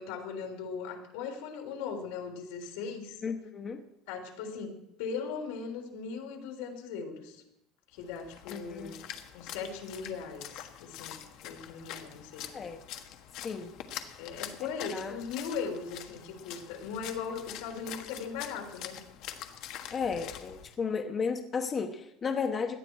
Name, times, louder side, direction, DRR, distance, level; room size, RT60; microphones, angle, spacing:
voice 1, 0.0-3.2 4.1-7.4 7.9-9.0 9.3-12.5 14.2-19.0, left 5 dB, 90° left, 3 dB, 3.3 m, -39 dB
voice 2, 3.2-3.8 8.5-9.0 12.5-12.8 13.4-13.7 14.9-15.2 19.9-22.8, left 5 dB, 25° left, 5 dB, 1.0 m, -33 dB
Splash splatter, 8.0-20.7, left 11 dB, 60° left, 1.4 m, -45 dB
18.0 x 12.0 x 4.7 m, 0.81 s
cardioid pair, 145°, 0 cm